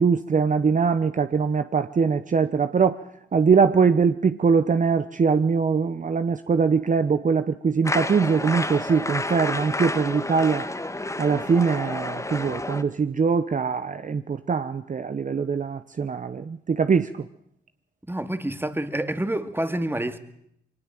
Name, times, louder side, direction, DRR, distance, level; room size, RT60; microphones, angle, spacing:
voice 1, 0.0-3.0 3.3-10.7 11.2-17.2, right 5 dB, 40° right, 1.0 m, -22 dB
sound 1, 7.8-12.8, left 2 dB, 15° left, 1.8 m, -30 dB
voice 2, 18.1-20.2, right 1 dB, 10° right, 2.3 m, -28 dB
22.5 x 19.0 x 7.6 m
supercardioid pair, 50°, 19 cm